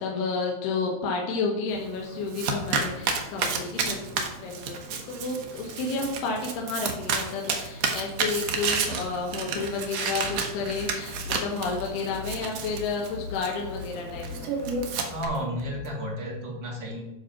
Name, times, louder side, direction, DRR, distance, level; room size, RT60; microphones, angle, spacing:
voice 1, 0.0-14.5, left 4 dB, 85° left, 0 dB, 3.1 m, -31 dB
Domestic sounds home sounds, 1.7-15.3, right 5 dB, 75° right, 1.5 m, -31 dB
sound 1, 10.2-15.9, left 4 dB, 65° left, 2.4 m, -41 dB
voice 2, 15.1-17.0, equal, 40° right, -2 dB, 1.8 m, -32 dB
10.0 x 4.0 x 5.8 m, 0.95 s
omnidirectional pair, 4.4 m